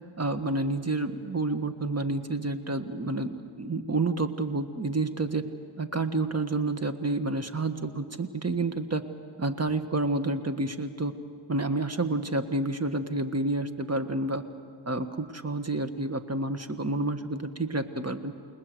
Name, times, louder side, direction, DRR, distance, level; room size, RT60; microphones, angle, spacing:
voice 1, 0.2-5.4 5.8-9.0 9.4-11.1 11.5-14.4 14.8-18.3, right 2 dB, 30° right, 9 dB, 1.6 m, -29 dB
29.5 x 19.5 x 7.9 m, 2.2 s
cardioid pair, 55°, 47 cm